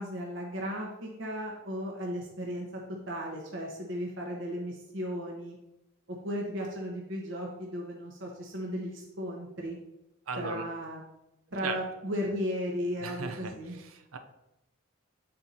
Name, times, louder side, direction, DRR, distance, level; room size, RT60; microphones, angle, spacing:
voice 1, 0.0-2.8 3.1-5.6 6.1-9.8 10.4-11.0 11.5-13.8, equal, 60° right, -1 dB, 1.0 m, -35 dB
voice 2, 10.3-10.7 11.6-11.8 13.0-13.6 13.8-14.2, right 4 dB, 85° right, 7 dB, 0.8 m, -36 dB
7.8 x 4.3 x 4.0 m, 0.90 s
head